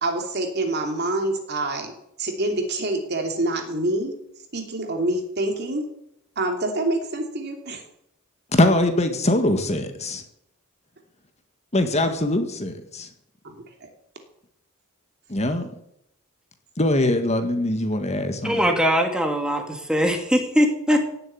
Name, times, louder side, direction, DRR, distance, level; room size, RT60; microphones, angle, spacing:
voice 1, 0.0-4.1 4.5-5.8 6.4-7.8 13.4-13.5 13.8-13.9, right 2 dB, 50° right, 4 dB, 3.0 m, -26 dB
voice 2, 8.5-10.2 11.7-13.1 15.3-15.7 16.8-18.6, left 1 dB, 30° left, 7 dB, 1.7 m, -22 dB
voice 3, 18.4-21.0, equal, 5° right, 3 dB, 2.3 m, -21 dB
17.0 x 7.8 x 9.4 m, 0.76 s
head